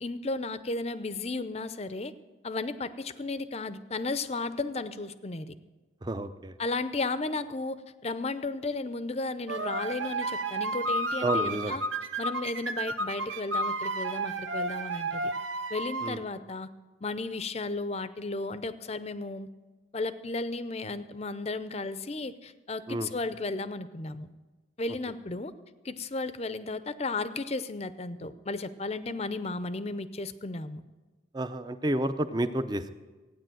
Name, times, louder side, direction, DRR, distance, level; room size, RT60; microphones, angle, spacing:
voice 1, 0.0-2.1 2.4-5.6 6.6-11.8 12.2-15.3 15.7-16.7 17.0-19.5 19.9-24.3 24.8-25.5 25.8-30.8, left 3 dB, 35° left, 14 dB, 0.6 m, -34 dB
voice 2, 6.0-6.5 11.2-11.8 16.0-16.2 22.9-23.1 31.3-32.9, right 1 dB, 20° right, 11 dB, 0.6 m, -30 dB
sound 1, 9.5-16.2, right 2 dB, 80° right, 1.0 m, -32 dB
15.5 x 9.6 x 7.7 m, 1.3 s
head